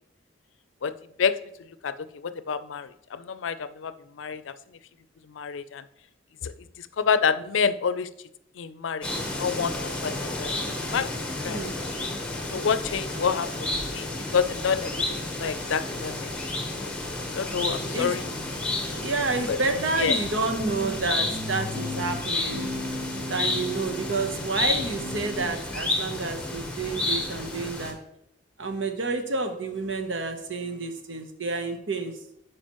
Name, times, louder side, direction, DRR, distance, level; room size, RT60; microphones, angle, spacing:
voice 1, 1.2-4.5 5.3-5.8 6.4-6.5 6.8-8.1 8.6-9.1 9.4-11.1 11.4-11.6 12.5-14.1 14.3-16.3 17.3-18.2 19.5-19.6 20.0-20.2, left 6 dB, 90° left, 13 dB, 0.5 m, -28 dB
sound 1, 9.0-27.9, left 2 dB, 5° left, 1.0 m, -31 dB
voice 2, 11.5-11.9 17.9-18.1 18.9-22.7 23.3-28.0 28.6-32.1, right 3 dB, 80° right, 6 dB, 1.0 m, -29 dB
sound 2, 17.5-25.5, left 1 dB, 65° right, 3.0 m, -37 dB
11.5 x 4.8 x 3.0 m, 0.77 s
head